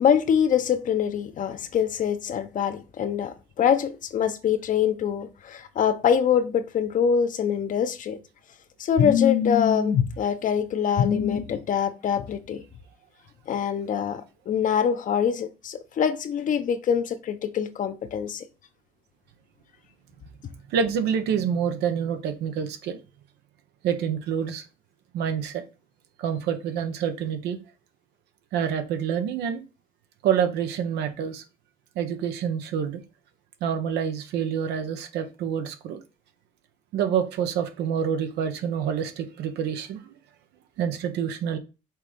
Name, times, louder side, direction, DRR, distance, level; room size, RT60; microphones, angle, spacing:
voice 1, 0.0-8.2 8.8-12.6 13.5-18.4, left 8 dB, 50° left, 0.9 m, -24 dB
voice 2, 20.7-23.0 23.8-24.6 25.1-25.6 26.2-27.6 28.5-29.6 30.2-31.4 31.9-33.0 33.6-36.0 36.9-40.1 40.8-41.6, right 8 dB, 80° right, 1.2 m, -27 dB
6.1 x 3.7 x 5.3 m
cardioid pair, 110°, 17 cm